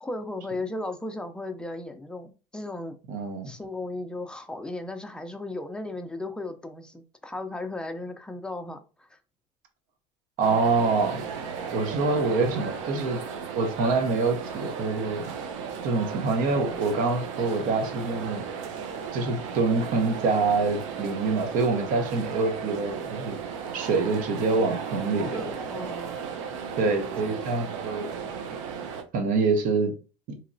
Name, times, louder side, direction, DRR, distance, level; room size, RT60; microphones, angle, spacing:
voice 1, 0.0-3.0 3.4-9.1 25.0-26.2, left 2 dB, 5° left, 0.5 m, -36 dB
voice 2, 3.1-3.5 10.4-11.2 11.7-13.2 13.6-15.2 15.8-18.4 19.1-23.4 23.7-25.4 26.8-28.1 29.1-29.9 30.3-30.4, right 3 dB, 60° right, 0.8 m, -25 dB
sound 1, 10.4-29.0, right 6 dB, 90° right, 0.5 m, -35 dB
2.9 x 2.9 x 2.6 m
supercardioid pair, 100°, 16 cm